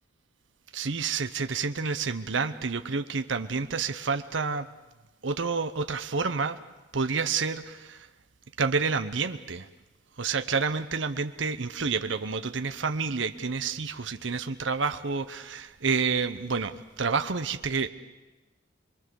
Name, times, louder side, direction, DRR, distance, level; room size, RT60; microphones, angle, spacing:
voice 1, 0.7-4.7 5.2-6.6 6.9-8.1 8.6-9.7 10.2-17.9, right 5 dB, 70° right, 9 dB, 0.9 m, -29 dB
27.0 x 22.0 x 7.0 m, 1.1 s
head